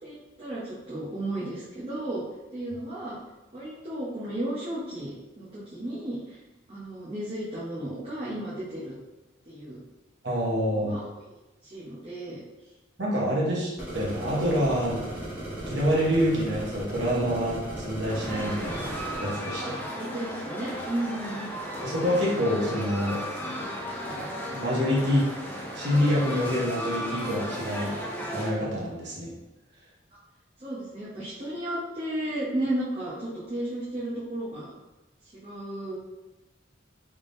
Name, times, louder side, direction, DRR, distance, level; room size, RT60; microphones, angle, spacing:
voice 1, 0.0-2.2 2.5-3.2 3.5-6.4 6.7-8.9 9.4-9.8 10.7-11.2 11.6-12.4 13.1-13.6 19.5-19.7 20.0-21.5 30.6-34.7 35.4-36.0, right 1 dB, 30° right, -9 dB, 0.7 m, -34 dB
voice 2, 10.2-10.9 13.0-15.1 15.7-18.9 19.2-19.7 21.8-23.6 24.1-24.2 24.5-25.3 25.7-27.9 28.3-29.3, equal, 60° right, -4 dB, 1.0 m, -26 dB
sound 1, 13.8-19.2, right 1 dB, 10° right, 1.0 m, -37 dB
sound 2, 18.1-28.5, equal, 10° left, 0.4 m, -35 dB
3.6 x 3.4 x 2.6 m, 1.0 s
head